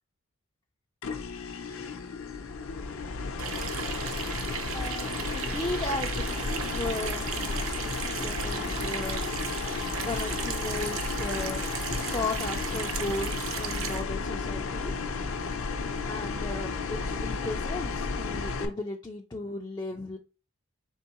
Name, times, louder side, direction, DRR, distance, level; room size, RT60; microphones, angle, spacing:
sound 1, 1.0-18.6, left 4 dB, 65° left, 0.6 m, -33 dB
Water tap faucet / Sink (filling or washing), 3.4-14.0, right 6 dB, 70° right, 0.6 m, -36 dB
voice 1, 4.7-14.9 16.1-20.2, left 2 dB, 20° left, 0.3 m, -36 dB
Laughter, 6.9-12.6 13.0-13.3, right 2 dB, 85° right, 2.3 m, -53 dB
4.4 x 3.5 x 2.9 m
head